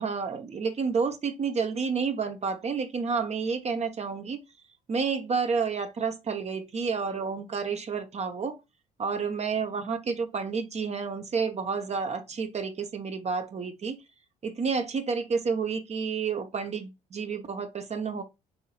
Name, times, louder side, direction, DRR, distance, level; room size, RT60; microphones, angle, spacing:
voice 1, 0.0-4.4 4.9-8.6 9.0-14.0 14.4-18.2, right 5 dB, 40° right, 0.8 m, -30 dB
5.7 x 2.7 x 2.8 m
supercardioid pair, 65°, 18 cm